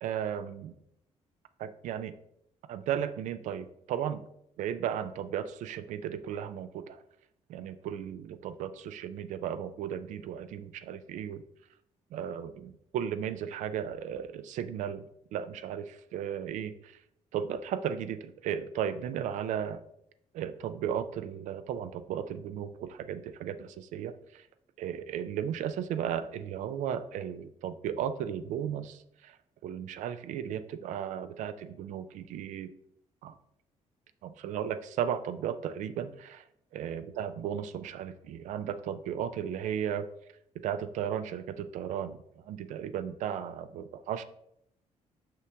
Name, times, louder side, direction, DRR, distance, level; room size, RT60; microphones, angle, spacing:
voice 1, 0.0-0.8 1.6-2.1 2.7-4.2 4.6-7.0 7.5-11.4 12.1-15.1 15.3-16.9 17.3-19.8 20.3-24.5 24.8-29.4 29.6-32.7 33.2-33.3 34.2-36.4 36.7-40.1 40.6-42.2 42.5-44.2, right 9 dB, 85° right, 12 dB, 0.4 m, -35 dB
5.6 x 5.0 x 3.4 m, 0.76 s
cardioid pair, 110°, 12 cm